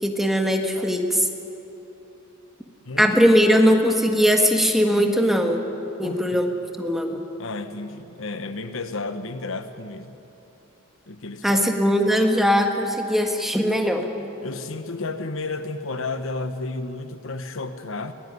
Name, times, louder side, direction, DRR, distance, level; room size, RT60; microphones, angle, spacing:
voice 1, 0.0-1.3 3.0-5.6 6.0-6.5 6.8-7.2 11.4-14.1, equal, ahead, 3 dB, 1.7 m, -20 dB
voice 2, 2.8-3.2 3.5-3.6 6.0-6.4 7.4-10.2 11.1-11.6 14.4-18.1, left 3 dB, 70° left, 9 dB, 1.1 m, -32 dB
23.5 x 18.5 x 9.7 m, 2.9 s
head